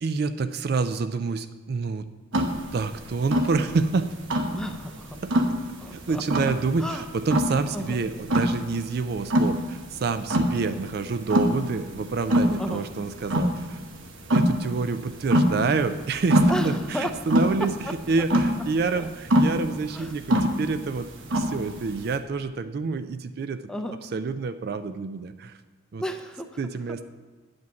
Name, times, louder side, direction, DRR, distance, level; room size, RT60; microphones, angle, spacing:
voice 1, 0.0-2.1 2.7-4.1 5.2-5.3 5.9-13.8 14.3-23.6 24.0-25.6 25.9-26.0 26.6-27.0, right 4 dB, 50° right, 11 dB, 0.4 m, -28 dB
sound 1, 2.3-22.2, equal, 70° right, 1.1 m, -24 dB
voice 2, 4.5-5.2 5.8-6.5 6.8-7.0 7.7-8.0 12.6-12.9 16.5-17.1 17.8-17.9 18.9-19.1 19.9-20.1 23.7-24.0 26.0-26.5, equal, 5° left, 5 dB, 0.5 m, -33 dB
9.3 x 5.2 x 6.9 m, 1.4 s
head